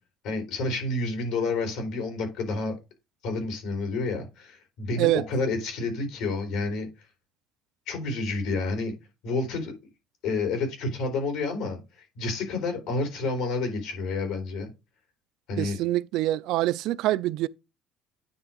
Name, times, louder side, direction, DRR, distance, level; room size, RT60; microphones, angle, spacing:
voice 1, 0.2-2.7 3.2-6.9 7.9-9.0 9.2-9.7 10.2-14.7 15.5-15.8, left 3 dB, 70° left, 4.2 m, -29 dB
voice 2, 15.6-17.5, right 15 dB, 70° right, 0.4 m, -25 dB
9.6 x 3.4 x 5.2 m
cardioid pair, 145°, 0 cm